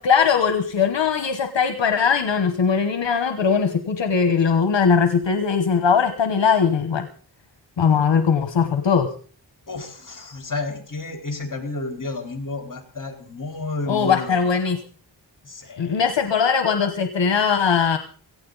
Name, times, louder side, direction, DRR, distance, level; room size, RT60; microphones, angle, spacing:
voice 1, 0.0-7.1 7.8-9.1 13.9-14.8 15.8-18.0, left 6 dB, 75° left, 8 dB, 1.2 m, -20 dB
voice 2, 9.7-14.5 15.4-16.0, left 3 dB, 45° left, 4 dB, 3.9 m, -31 dB
17.5 x 15.5 x 4.0 m, 0.43 s
wide cardioid pair, 100°, 44 cm